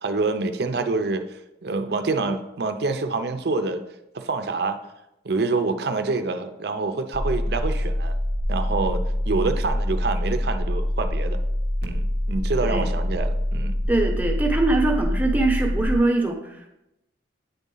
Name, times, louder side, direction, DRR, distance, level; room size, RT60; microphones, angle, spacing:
voice 1, 0.0-3.9 4.1-4.8 5.2-8.2 8.5-11.4 11.8-13.8, right 3 dB, 60° right, 8 dB, 0.5 m, -26 dB
sound 1, 7.1-16.0, left 1 dB, 55° left, 1.0 m, -25 dB
voice 2, 13.9-16.7, right 2 dB, 10° right, 1 dB, 0.8 m, -23 dB
8.9 x 4.1 x 3.8 m, 0.89 s
head